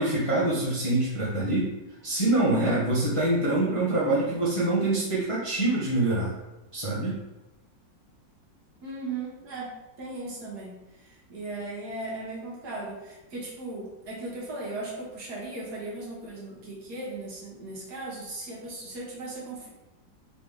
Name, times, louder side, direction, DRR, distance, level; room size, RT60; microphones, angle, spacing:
voice 1, 0.0-1.7 2.0-6.3 6.7-7.2, right 2 dB, 25° left, -8 dB, 0.7 m, -25 dB
voice 2, 8.8-9.7 10.0-19.7, right 2 dB, 60° right, -5 dB, 1.7 m, -37 dB
4.0 x 3.3 x 3.7 m, 1.0 s
omnidirectional pair, 1.9 m